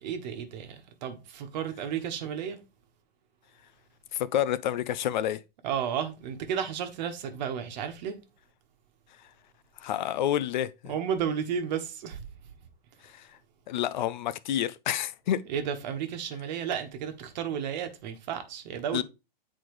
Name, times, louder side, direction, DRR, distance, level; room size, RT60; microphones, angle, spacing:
voice 1, 0.0-2.6 5.6-8.2 10.9-12.2 15.5-19.0, right 8 dB, 45° right, 1.3 m, -33 dB
voice 2, 4.1-5.4 9.8-10.9 13.0-13.3 13.7-15.4 18.9-19.0, left 11 dB, 50° left, 0.5 m, -29 dB
8.7 x 4.1 x 3.1 m
hypercardioid pair, 130°, 29 cm